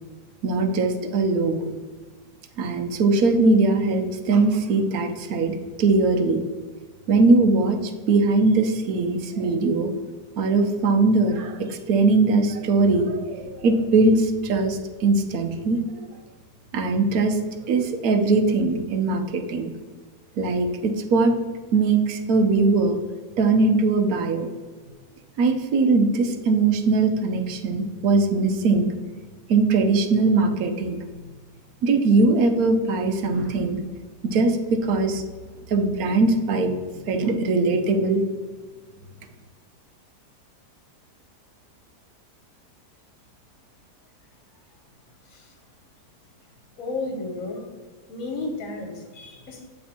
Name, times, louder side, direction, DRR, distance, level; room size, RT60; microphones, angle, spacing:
voice 1, 0.4-1.7 2.6-6.4 7.1-9.9 10.4-16.1 16.7-17.4 17.7-19.7 20.4-21.3 21.7-23.0 23.4-24.5 25.4-28.9 29.5-31.0 31.8-33.8 34.2-35.2 35.7-36.7 37.1-38.2, right 3 dB, 65° right, 6 dB, 1.1 m, -21 dB
voice 2, 46.8-47.6 48.1-49.7, left 3 dB, 55° left, 2 dB, 1.4 m, -32 dB
8.5 x 3.4 x 4.3 m, 1.5 s
omnidirectional pair, 1.7 m